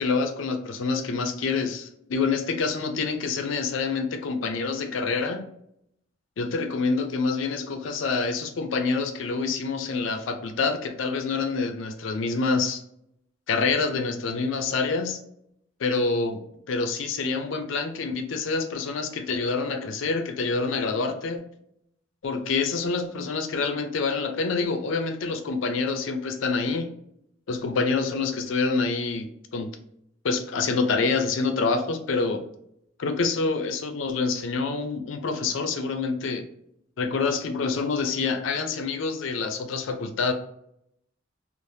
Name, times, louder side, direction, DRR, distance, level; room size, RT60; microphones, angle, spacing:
voice 1, 0.0-5.4 6.4-12.8 13.5-15.2 15.8-21.4 22.2-26.9 27.5-29.3 29.5-29.7 30.2-32.4 33.0-36.4 37.0-40.3, left 4 dB, 75° left, 7 dB, 0.4 m, -27 dB
3.2 x 2.0 x 2.7 m, 0.75 s
head